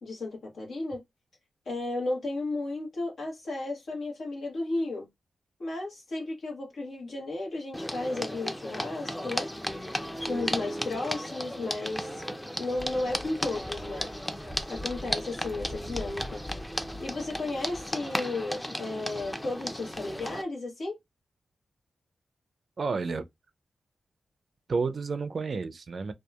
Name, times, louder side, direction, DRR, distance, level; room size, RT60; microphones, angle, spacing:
voice 1, 0.0-1.0 1.7-5.1 5.6-9.5 10.2-12.3 12.6-14.1 14.7-16.4 17.0-21.0, left 2 dB, 80° left, 1.1 m, -34 dB
sound 1, 7.7-20.4, equal, 10° left, 0.4 m, -35 dB
sound 2, 12.7-17.9, left 1 dB, 25° left, 1.2 m, -44 dB
voice 2, 22.8-23.2 24.7-26.1, right 4 dB, 60° right, 0.3 m, -30 dB
2.7 x 2.2 x 2.2 m
cardioid pair, 50°, 0 cm